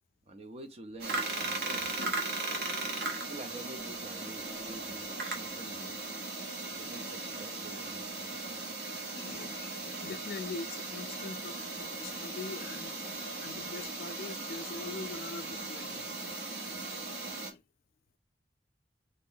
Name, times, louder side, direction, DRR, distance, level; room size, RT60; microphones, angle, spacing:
voice 1, 0.3-2.1 3.2-6.0 6.7-8.9, right 2 dB, 35° right, 0.5 m, -48 dB
sound 1, 1.0-17.5, right 3 dB, 65° right, 1.0 m, -38 dB
voice 2, 2.5-3.3 8.8-12.9 13.4-16.1 16.5-16.6 17.5-17.6, left 4 dB, 55° left, 0.3 m, -44 dB
sound 2, 4.4-9.6, right 1 dB, 15° right, 1.7 m, -59 dB
2.8 x 2.4 x 3.8 m
head